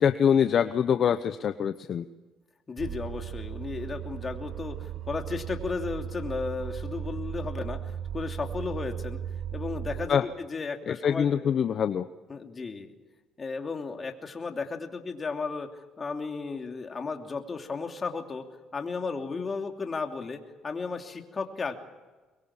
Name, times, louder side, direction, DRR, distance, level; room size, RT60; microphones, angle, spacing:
voice 1, 0.0-2.0 10.1-10.3 10.9-12.1, left 8 dB, 50° left, 10 dB, 0.9 m, -24 dB
voice 2, 2.7-9.2 9.5-11.5 12.3-12.9 13.4-18.4 18.7-21.7, left 4 dB, 30° left, 4 dB, 2.9 m, -34 dB
sound 1, 2.8-10.1, right 9 dB, 60° right, 1.7 m, -36 dB
23.0 x 23.0 x 7.3 m, 1.3 s
cardioid pair, 95°, 0 cm